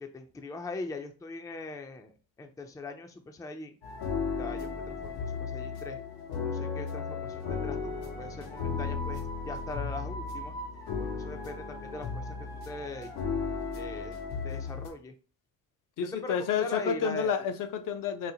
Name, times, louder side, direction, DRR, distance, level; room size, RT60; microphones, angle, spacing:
voice 1, 0.0-3.8 4.3-6.0 6.4-10.6 11.0-13.2 13.7-14.2 14.4-15.1 16.1-17.3, left 3 dB, 10° left, 0.4 m, -41 dB
sound 1, 3.8-14.9, left 5 dB, 85° left, 0.9 m, -35 dB
voice 2, 16.0-18.3, left 7 dB, 60° left, 0.6 m, -30 dB
4.0 x 2.0 x 2.7 m
cardioid pair, 95°, 37 cm